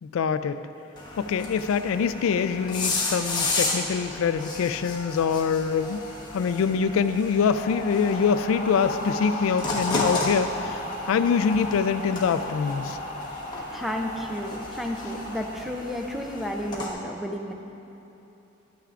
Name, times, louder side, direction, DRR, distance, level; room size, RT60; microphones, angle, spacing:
voice 1, 0.0-0.6 1.2-6.0 6.3-13.0, left 6 dB, 90° left, 11 dB, 0.3 m, -24 dB
sound 1, 1.0-16.9, left 2 dB, 20° left, 1.1 m, -33 dB
sound 2, 7.4-16.5, left 2 dB, 40° left, 0.8 m, -36 dB
voice 2, 13.7-17.5, equal, ahead, 2 dB, 0.4 m, -32 dB
12.5 x 9.0 x 2.4 m, 3.0 s
head